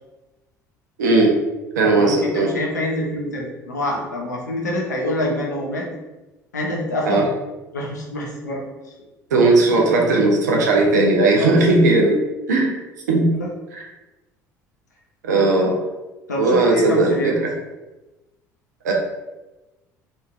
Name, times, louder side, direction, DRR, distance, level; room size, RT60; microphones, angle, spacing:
voice 1, 1.0-1.3 1.8-2.5 7.1-7.3 9.3-12.2 12.5-12.8 13.1-13.3 13.7-13.8 15.2-15.8 16.4-17.5 18.8-18.9, right 2 dB, 75° right, 0 dB, 0.5 m, -17 dB
voice 2, 1.9-5.9 6.5-7.2 7.7-8.6 11.4-11.6 16.3-17.3, left 1 dB, 85° left, -2 dB, 0.5 m, -26 dB
2.9 x 2.5 x 2.3 m, 1.1 s
figure-of-eight pair, 60°, 9 cm